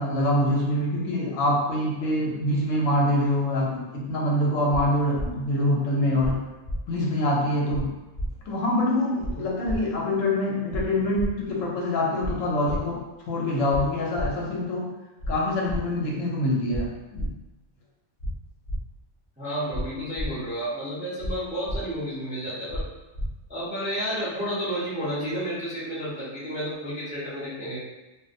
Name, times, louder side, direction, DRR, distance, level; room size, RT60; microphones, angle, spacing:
voice 1, 0.0-6.4 6.9-7.9 8.5-14.9 15.3-17.3, left 1 dB, 85° left, -3 dB, 1.0 m, -25 dB
sound 1, 5.1-5.3 6.2-6.3 6.6-6.8 7.7-7.8 8.1-8.3 9.2-9.3 9.6-9.8 10.7-10.8 11.1-11.3 12.2-12.3 12.6-12.8 13.7-13.8 14.1-14.3 15.2-15.3 15.6-15.8 16.7-16.8 17.1-17.3 18.2-18.3 18.6-18.8 19.7-19.8 20.1-20.3 21.2-21.3 21.6-21.8 22.7-22.8 23.1-23.3, equal, 55° left, 0.7 m, -30 dB
voice 2, 19.4-22.8 23.5-27.8, equal, 10° right, -9 dB, 0.4 m, -31 dB
2.4 x 2.0 x 2.5 m, 1.1 s
omnidirectional pair, 1.3 m